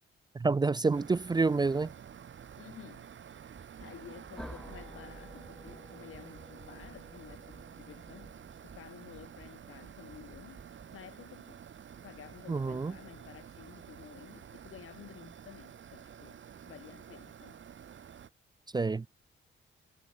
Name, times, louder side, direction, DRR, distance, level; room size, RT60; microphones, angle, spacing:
voice 1, 0.4-1.9 12.5-12.9 18.7-19.1, right 4 dB, 20° right, 0.4 m, -28 dB
sound 1, 0.9-18.3, right 8 dB, 65° right, 6.4 m, -50 dB
voice 2, 2.6-3.1 3.8-8.4 8.6-10.6 10.9-11.6 11.9-17.6, left 10 dB, 80° left, 4.5 m, -52 dB
sound 2, 3.5-3.9 4.2-5.1 5.4-5.8 6.1-7.0 7.3-7.7 8.0-8.9 9.2-9.6 9.9-11.0, right 5 dB, 40° right, 2.1 m, -56 dB
sound 3, 4.4-9.1, equal, ahead, 5.2 m, -51 dB
cardioid pair, 85°, 21 cm